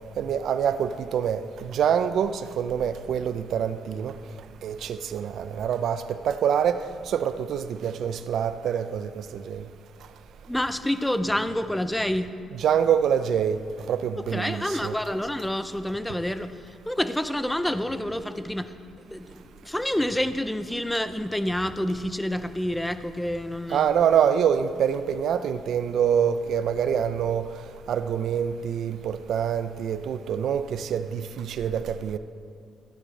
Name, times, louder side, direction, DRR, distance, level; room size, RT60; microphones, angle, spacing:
voice 1, 0.2-4.1 4.6-9.6 12.5-13.6 13.9-15.0 23.7-27.5 27.9-32.2, right 8 dB, 70° right, 11 dB, 0.5 m, -25 dB
voice 2, 10.5-12.3 14.3-16.5 16.9-18.7 19.1-23.9, left 1 dB, 5° left, 11 dB, 0.6 m, -28 dB
15.0 x 9.8 x 3.3 m, 2.4 s
cardioid pair, 90°, 0 cm